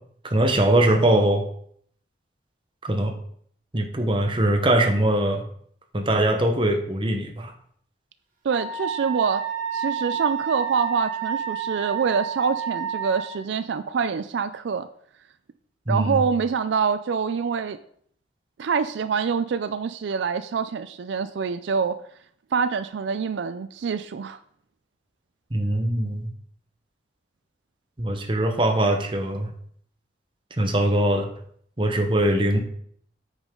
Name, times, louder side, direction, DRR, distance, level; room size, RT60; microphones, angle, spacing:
voice 1, 0.2-1.5 2.8-3.2 3.7-5.5 5.9-7.5 15.9-16.2 25.5-26.3 28.0-29.5 30.6-31.3 31.8-32.6, right 1 dB, 25° right, 5 dB, 1.0 m, -22 dB
voice 2, 8.4-9.4 9.7-14.9 15.9-17.8 18.6-22.0 22.5-24.4, right 6 dB, 75° right, 12 dB, 0.4 m, -25 dB
Wind instrument woodwind instrument, 8.5-13.4, right 7 dB, 50° right, 1.9 m, -30 dB
9.1 x 6.3 x 3.8 m, 0.64 s
head